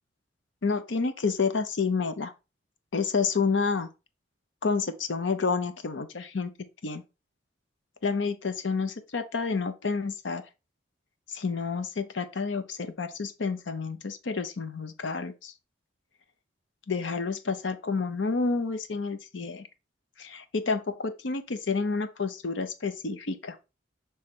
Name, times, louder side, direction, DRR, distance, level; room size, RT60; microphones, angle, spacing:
voice 1, 0.6-2.3 2.9-3.9 4.6-6.5 6.8-7.0 8.0-10.4 11.3-15.5 16.9-19.7 20.2-23.6, left 4 dB, 80° left, 0.7 m, -29 dB
6.3 x 3.5 x 4.3 m
head